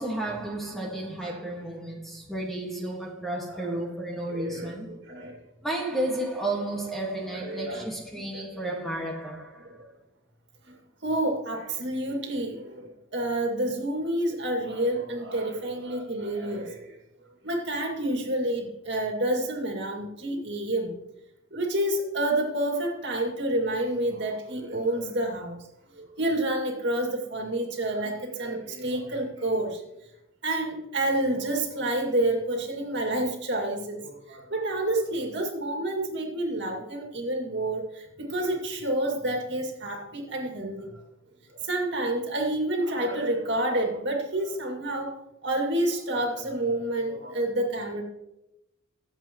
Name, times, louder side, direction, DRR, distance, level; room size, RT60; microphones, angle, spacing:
voice 1, 0.0-5.0 5.6-9.7, right 1 dB, ahead, 1.7 m, -32 dB
voice 2, 3.5-3.8 4.3-5.3 7.3-7.9 8.3-8.4 11.0-16.9 17.4-21.0 21.5-25.6 26.0-29.8 30.4-37.8 38.2-40.9 41.6-45.1 45.4-48.0, right 1 dB, 55° right, 2.4 m, -29 dB
22.0 x 7.8 x 3.1 m
head